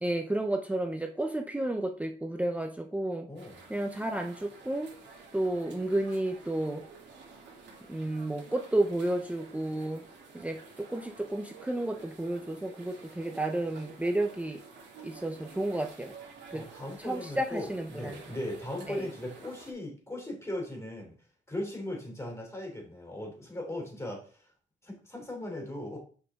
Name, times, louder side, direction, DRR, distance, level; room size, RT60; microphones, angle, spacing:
voice 1, 0.0-3.3 3.7-4.9 5.3-6.8 7.9-10.0 10.3-14.6 15.0-16.1 16.5-16.6 17.0-18.2 18.9-19.0, right 1 dB, 5° right, 4 dB, 0.7 m, -32 dB
voice 2, 3.3-3.7 16.5-21.1 21.5-24.5 24.8-26.0, left 1 dB, 15° left, 0 dB, 3.2 m, -38 dB
sound 1, 3.4-19.7, right 4 dB, 65° right, 2.5 m, -51 dB
6.4 x 5.1 x 3.7 m, 0.41 s
cardioid pair, 90°, 20 cm